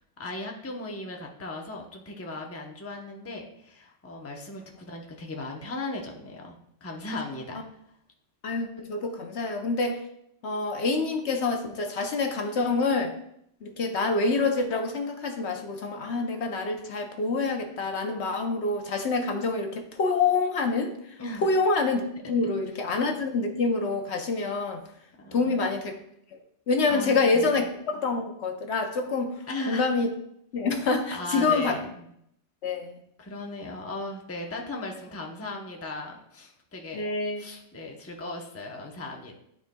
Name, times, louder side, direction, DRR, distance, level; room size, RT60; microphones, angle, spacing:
voice 1, 0.2-7.6 21.2-21.5 25.2-25.8 26.9-27.6 29.5-29.9 31.1-32.1 33.2-37.1 37.4-39.4, left 2 dB, 15° left, 1 dB, 0.7 m, -37 dB
voice 2, 8.4-10.0 10.4-13.1 13.6-20.9 21.4-22.0 22.3-24.8 25.3-25.9 26.3-26.4 26.7-27.6 27.9-29.3 29.7-30.1 30.5-31.8 32.6-33.0 36.9-37.4, left 3 dB, 65° left, 4 dB, 1.0 m, -26 dB
12.0 x 4.5 x 2.2 m, 0.73 s
omnidirectional pair, 1.3 m